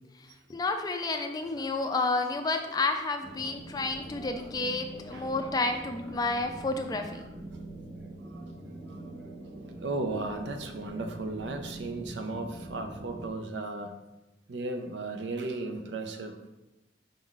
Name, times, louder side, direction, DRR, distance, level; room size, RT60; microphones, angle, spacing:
voice 1, 0.5-7.2, left 3 dB, 20° left, 6 dB, 0.4 m, -30 dB
sound 1, 3.2-13.3, right 1 dB, 30° right, 0.7 m, -44 dB
voice 2, 9.8-14.0 14.5-16.5, right 2 dB, 75° right, 5 dB, 0.5 m, -35 dB
5.1 x 3.8 x 2.4 m, 1.0 s
head